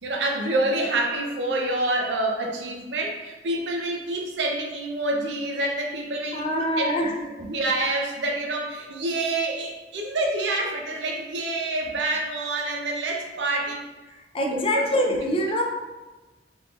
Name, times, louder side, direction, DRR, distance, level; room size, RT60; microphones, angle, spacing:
voice 1, 0.0-13.8 14.5-15.2 15.5-15.6, right 2 dB, 80° right, 1 dB, 0.6 m, -27 dB
voice 2, 6.3-7.1 14.3-15.6, equal, 30° left, 0 dB, 0.4 m, -24 dB
3.6 x 3.5 x 2.4 m, 1.2 s
head